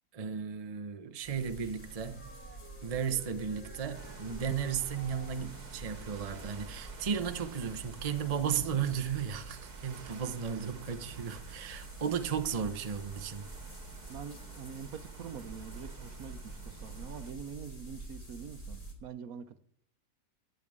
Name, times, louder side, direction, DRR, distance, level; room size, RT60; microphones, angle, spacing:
voice 1, 0.1-2.2 2.8-13.5, right 7 dB, 30° right, 0.8 m, -35 dB
sound 1, 1.2-18.9, right 2 dB, 25° left, 2.9 m, -47 dB
sound 2, 1.8-7.0, equal, 5° left, 1.6 m, -54 dB
sound 3, 3.9-17.3, right 6 dB, 85° right, 1.7 m, -52 dB
voice 2, 14.1-19.6, right 7 dB, 70° right, 1.3 m, -45 dB
12.0 x 8.5 x 8.6 m
omnidirectional pair, 1.6 m